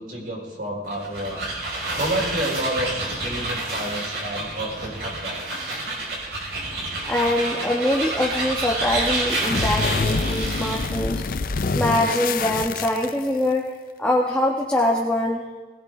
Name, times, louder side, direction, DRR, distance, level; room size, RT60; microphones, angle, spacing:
voice 1, 0.0-1.4 2.0-5.8, right 1 dB, 50° right, -2 dB, 5.2 m, -30 dB
sound 1, 0.8-10.9, right 2 dB, 70° right, 5.8 m, -29 dB
voice 2, 7.1-11.2 11.7-13.7 14.0-15.4, left 1 dB, 5° left, -3 dB, 1.4 m, -23 dB
sound 2, 9.3-13.5, left 4 dB, 50° left, 0.5 m, -26 dB
20.5 x 18.0 x 3.8 m, 1.3 s
head